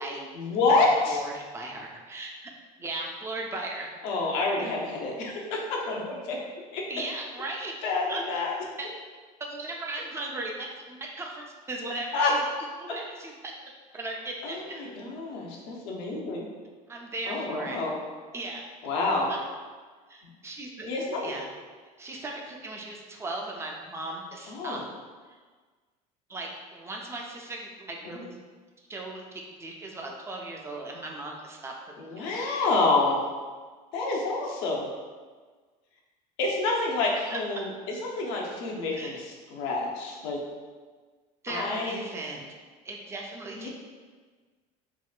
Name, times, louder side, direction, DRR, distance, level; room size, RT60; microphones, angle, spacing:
voice 1, 0.3-1.2 4.0-6.0 6.3-6.4 6.7-6.8 7.8-8.5 12.1-12.3 14.4-16.5 17.3-17.9 18.8-19.3 20.9-21.3 24.5-24.8 28.0-28.2 32.0-33.3 33.9-34.9 36.4-40.4 41.5-42.0 43.6-43.7, left 3 dB, 70° left, -2 dB, 0.7 m, -28 dB
voice 2, 1.1-2.5 2.8-3.9 6.9-7.7 8.1-8.2 8.8-8.9 9.4-12.4 12.8-13.5 13.9-14.6 16.9-17.8 18.3-18.6 19.3-19.4 20.1-20.9 21.2-21.5 22.0-24.8 26.3-28.4 28.9-29.2 29.6-32.6 37.3-37.4 39.0-39.2 41.4-42.4 42.8-43.7, right 2 dB, 15° right, 0 dB, 0.4 m, -37 dB
3.6 x 2.1 x 2.4 m, 1.4 s
hypercardioid pair, 85°, 20 cm